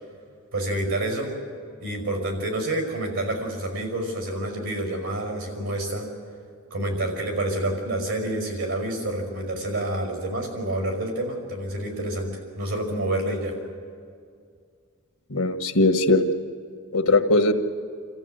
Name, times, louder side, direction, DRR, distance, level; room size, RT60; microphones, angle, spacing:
voice 1, 0.5-1.3 1.8-6.1 6.7-13.6, right 1 dB, 90° right, 3 dB, 5.5 m, -28 dB
voice 2, 15.3-16.3 16.9-17.5, left 2 dB, 80° left, 6 dB, 1.4 m, -19 dB
27.0 x 14.5 x 8.1 m, 2.2 s
head